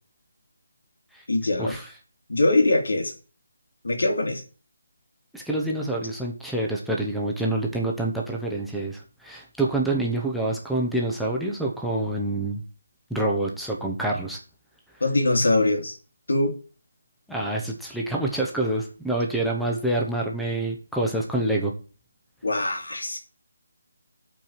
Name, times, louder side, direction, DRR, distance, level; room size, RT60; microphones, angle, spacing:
voice 1, 1.3-1.7 2.3-3.1 3.8-4.4 15.0-16.0 16.3-16.5 22.4-23.2, left 2 dB, 85° left, 3 dB, 2.7 m, -22 dB
voice 2, 5.3-12.6 13.1-14.4 17.3-21.7, right 2 dB, ahead, -2 dB, 0.7 m, -27 dB
7.8 x 4.6 x 7.2 m, 0.36 s
hypercardioid pair, 175°, 0 cm